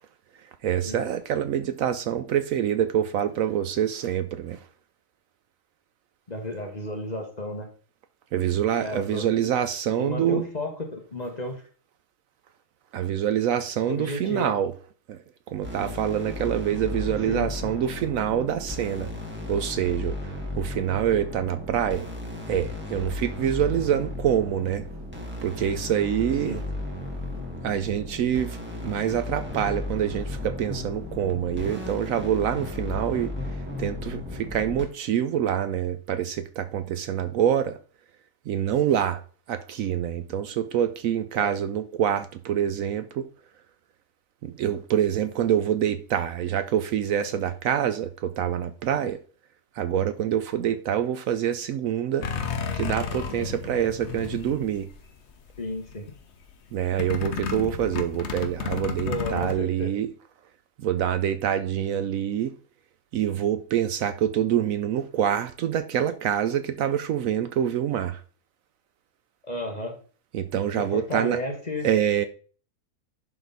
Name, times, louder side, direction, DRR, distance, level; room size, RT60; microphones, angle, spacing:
voice 1, 0.6-4.6 8.3-10.4 12.9-14.7 15.1-15.2 15.5-19.1 19.5-20.2 20.6-22.0 22.5-24.9 25.4-26.6 27.6-33.3 33.8-37.8 38.5-39.2 39.5-43.3 44.4-49.2 49.8-52.3 52.7-54.9 56.7-60.1 60.8-62.5 63.1-68.2 70.3-71.4 71.8-72.3, right 10 dB, 70° right, 0.9 m, -26 dB
voice 2, 6.3-7.7 8.8-9.3 10.0-11.6 13.8-14.6 17.3-17.8 26.4-26.6 41.4-41.5 55.6-56.1 59.0-60.0 69.4-70.0 70.8-71.9, left 1 dB, 30° left, 1.3 m, -33 dB
sound 1, 15.6-34.8, left 2 dB, 5° right, 1.7 m, -35 dB
sound 2, 52.2-55.2 55.5-56.1 57.0-59.5, left 5 dB, 50° left, 1.0 m, -32 dB
11.0 x 3.8 x 4.0 m
omnidirectional pair, 1.6 m